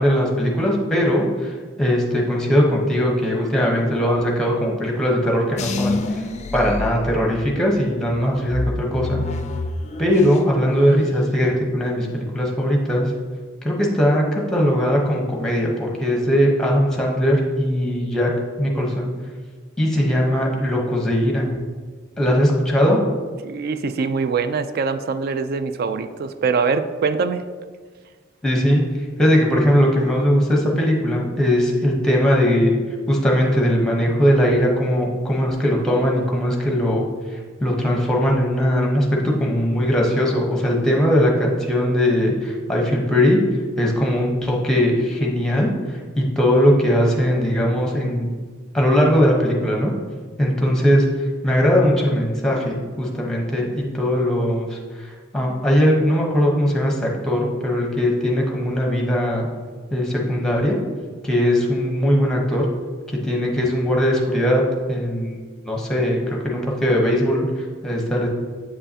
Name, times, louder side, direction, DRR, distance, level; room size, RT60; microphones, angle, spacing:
voice 1, 0.0-1.5 1.8-6.2 6.5-9.2 10.0-13.1 13.6-18.3 18.6-19.1 19.8-21.5 22.2-23.0 28.4-32.7 33.1-39.1 39.4-43.4 43.8-48.3 48.7-49.9 50.4-59.5 59.9-60.8 61.2-62.6 63.1-64.6 64.9-65.4 65.6-68.3, equal, 5° left, -1 dB, 0.9 m, -20 dB
sound 1, 5.6-7.6 8.1-10.6 10.9-11.5, left 2 dB, 35° left, 0.4 m, -28 dB
voice 2, 23.4-27.4, right 5 dB, 50° right, 11 dB, 0.3 m, -23 dB
7.9 x 5.5 x 2.8 m, 1.5 s
head